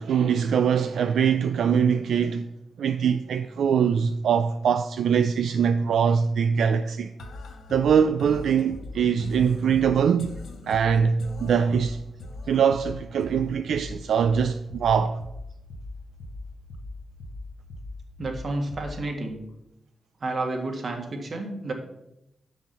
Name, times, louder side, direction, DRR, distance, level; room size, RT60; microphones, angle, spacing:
voice 1, 0.0-2.4 2.8-7.1 7.7-10.3 10.7-12.0 12.5-15.2, right 7 dB, 80° right, 0.3 m, -22 dB
sound 1, 7.2-19.2, left 2 dB, 80° left, 1.0 m, -40 dB
voice 2, 18.2-19.4 20.2-21.7, right 2 dB, 55° right, 1.7 m, -30 dB
6.1 x 5.7 x 6.7 m
cardioid pair, 70°, 0 cm